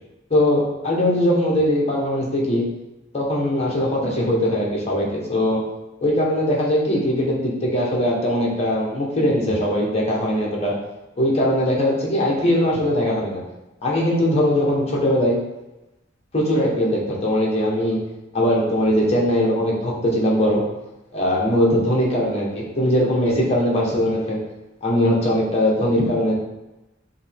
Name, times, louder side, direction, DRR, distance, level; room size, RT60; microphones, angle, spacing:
voice 1, 0.3-2.6 3.1-5.6 6.0-10.7 11.2-13.4 13.8-15.4 16.3-18.0 18.3-20.6 21.1-24.4 24.8-26.3, left 1 dB, 35° left, -3 dB, 1.1 m, -20 dB
5.4 x 2.8 x 3.5 m, 0.95 s
head